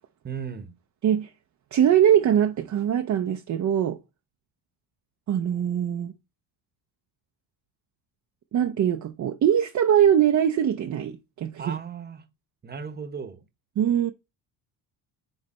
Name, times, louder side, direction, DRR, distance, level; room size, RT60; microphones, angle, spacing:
voice 1, 0.2-0.7 11.6-12.2 12.6-13.4, right 6 dB, 20° right, 1.0 m, -36 dB
voice 2, 1.7-4.0 5.3-6.1 8.5-11.8 13.8-14.1, right 9 dB, 40° right, 0.6 m, -22 dB
9.7 x 3.3 x 4.2 m
cardioid pair, 120°, 45 cm